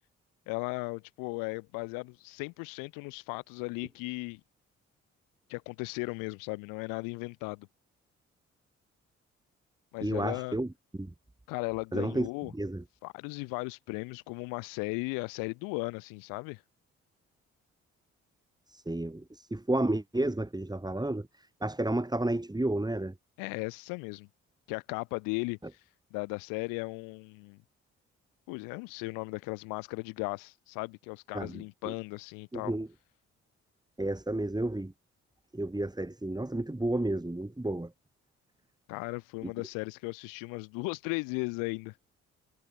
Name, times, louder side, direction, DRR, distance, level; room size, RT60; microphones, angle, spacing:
voice 1, 0.5-4.4 5.5-7.7 9.9-10.6 11.5-12.5 13.0-16.6 23.4-24.3 24.7-25.6 26.1-27.6 28.5-32.7 38.9-41.9, left 30 dB, 85° left, 5.7 m, -36 dB
voice 2, 10.0-10.7 11.0-11.1 11.9-12.3 12.5-12.8 18.7-21.3 21.6-23.1 31.3-31.9 32.5-32.9 34.0-34.9 35.5-37.9, right 1 dB, 10° right, 4.4 m, -31 dB
hypercardioid pair, 45°, 32 cm